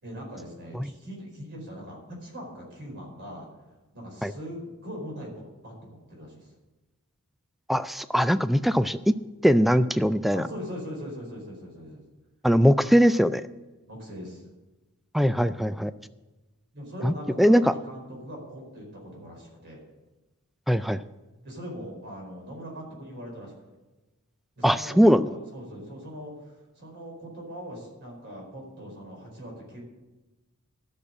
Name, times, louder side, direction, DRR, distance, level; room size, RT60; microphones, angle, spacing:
voice 1, 0.0-3.5 3.9-6.5 10.3-12.0 13.8-14.4 16.7-19.8 21.4-23.5 24.6-29.8, equal, 50° right, -1 dB, 4.6 m, -41 dB
voice 2, 7.7-9.1 9.4-10.5 12.4-13.4 15.1-15.9 17.0-17.7 20.7-21.0 24.6-25.3, equal, ahead, 13 dB, 0.3 m, -21 dB
12.5 x 6.7 x 8.7 m, 1.1 s
head